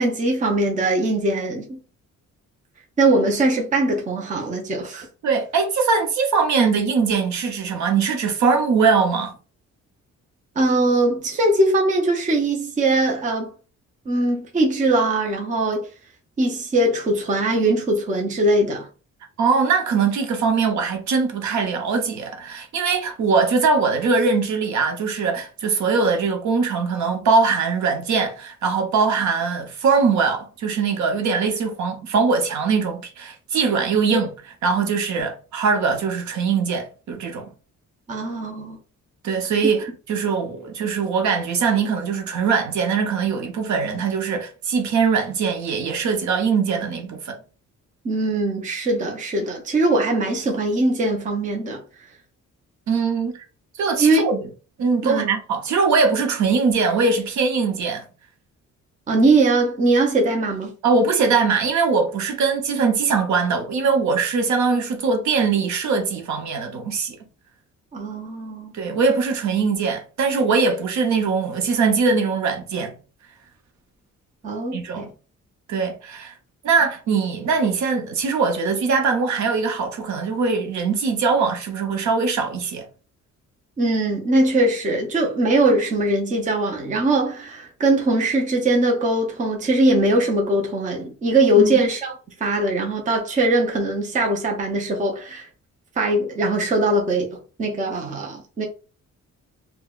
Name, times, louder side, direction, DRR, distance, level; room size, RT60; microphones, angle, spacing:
voice 1, 0.0-1.8 3.0-5.1 10.6-13.5 14.1-15.9 16.4-18.9 38.1-38.8 48.0-51.8 54.0-54.2 55.0-55.3 59.1-60.7 67.9-68.7 74.4-75.1 83.8-92.1 92.4-95.5 96.0-98.7, right 2 dB, 25° right, 0.6 m, -21 dB
voice 2, 5.2-9.3 19.4-37.5 39.2-47.4 52.9-53.4 53.8-54.5 54.8-58.0 60.8-67.2 68.7-73.0 74.7-75.1 75.7-76.3 76.6-82.9 91.6-91.7, right 5 dB, 70° right, 0.8 m, -21 dB
3.7 x 2.2 x 2.3 m
wide cardioid pair, 180°, 30 cm